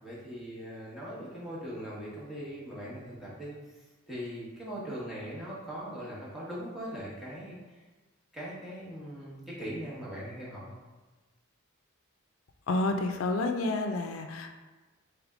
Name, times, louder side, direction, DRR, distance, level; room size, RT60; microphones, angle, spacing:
voice 1, 0.0-3.5 4.1-7.8 8.3-10.8, equal, ahead, -8 dB, 1.1 m, -40 dB
voice 2, 12.7-14.5, left 2 dB, 80° left, 5 dB, 0.4 m, -29 dB
3.4 x 3.3 x 3.6 m, 1.3 s
head